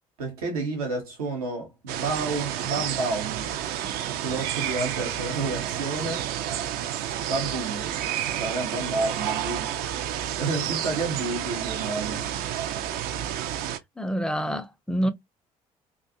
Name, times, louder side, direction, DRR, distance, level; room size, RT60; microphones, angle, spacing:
voice 1, 0.2-3.6 4.2-6.3 7.2-7.9 8.3-9.8 10.4-12.3, right 3 dB, 80° right, 0.7 m, -30 dB
sound 1, 1.9-13.8, right 11 dB, 55° right, 0.4 m, -30 dB
voice 2, 14.0-15.1, equal, 5° left, 0.4 m, -27 dB
2.5 x 2.3 x 2.5 m
figure-of-eight pair, 50°, 18 cm